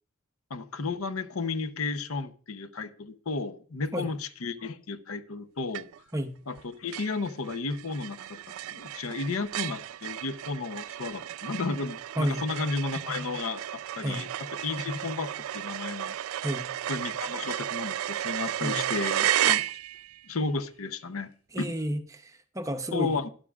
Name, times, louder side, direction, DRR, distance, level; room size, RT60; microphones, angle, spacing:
voice 1, 0.5-5.9 6.5-8.4 8.6-14.3 14.6-16.2 16.9-19.6 20.3-21.3 21.6-21.7 22.9-23.3, left 4 dB, 75° left, 11 dB, 0.7 m, -33 dB
sound 1, 5.7-6.2 6.5-6.6 6.9-20.2, right 12 dB, 75° right, 0.3 m, -33 dB
voice 2, 21.5-23.2, equal, 15° right, 7 dB, 0.7 m, -31 dB
12.0 x 11.5 x 2.3 m, 0.43 s
head